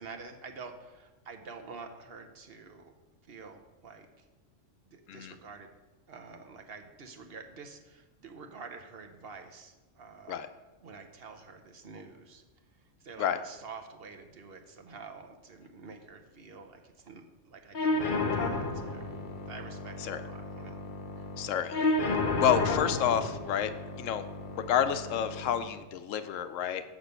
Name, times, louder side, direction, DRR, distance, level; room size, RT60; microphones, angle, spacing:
voice 1, 0.0-2.9 3.3-4.2 4.8-5.7 6.1-10.4 10.8-12.4 13.0-19.1 19.5-20.8 21.2-21.3, right 4 dB, 55° right, 5 dB, 1.0 m, -48 dB
sound 1, 17.7-25.7, left 2 dB, 45° left, 0.8 m, -32 dB
voice 2, 21.4-21.9 22.4-23.7 24.0-24.2 24.5-26.8, left 9 dB, 80° left, 11 dB, 1.0 m, -29 dB
7.0 x 6.2 x 6.6 m, 1.2 s
omnidirectional pair, 1.3 m